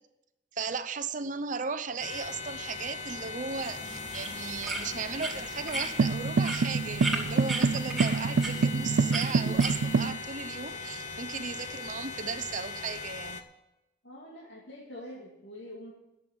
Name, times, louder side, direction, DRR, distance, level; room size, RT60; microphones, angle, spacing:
voice 1, 0.5-13.4, right 5 dB, 45° right, 11 dB, 0.7 m, -36 dB
sound 1, 2.0-13.4, left 4 dB, 40° left, 0.9 m, -40 dB
sound 2, 3.5-10.1, right 2 dB, ahead, 2.5 m, -37 dB
sound 3, 6.0-10.2, right 4 dB, 70° right, 0.4 m, -26 dB
voice 2, 14.0-15.9, left 1 dB, 75° left, -5 dB, 2.4 m, -45 dB
11.0 x 7.7 x 8.7 m, 0.95 s
head